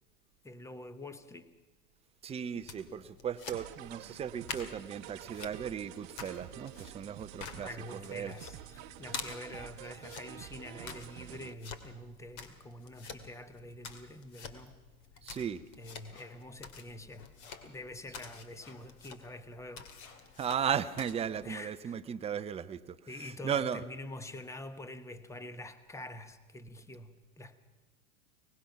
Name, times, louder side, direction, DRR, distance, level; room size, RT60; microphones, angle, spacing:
voice 1, 0.4-1.5 7.6-14.8 15.8-17.3 17.6-19.8 21.4-22.0 23.1-27.6, left 1 dB, 5° left, 12 dB, 1.1 m, -46 dB
voice 2, 2.2-8.3 15.2-15.6 20.4-23.8, right 8 dB, 15° right, 10 dB, 0.7 m, -36 dB
sound 1, 2.6-21.5, left 5 dB, 45° left, 2.4 m, -49 dB
sound 2, 3.5-11.5, right 15 dB, 40° right, 1.0 m, -49 dB
sound 3, 16.1-16.5 17.4-17.8 18.6-19.0 20.0-20.4, left 4 dB, 70° left, 3.5 m, -58 dB
23.5 x 19.5 x 5.8 m, 1.2 s
hypercardioid pair, 115°, 43 cm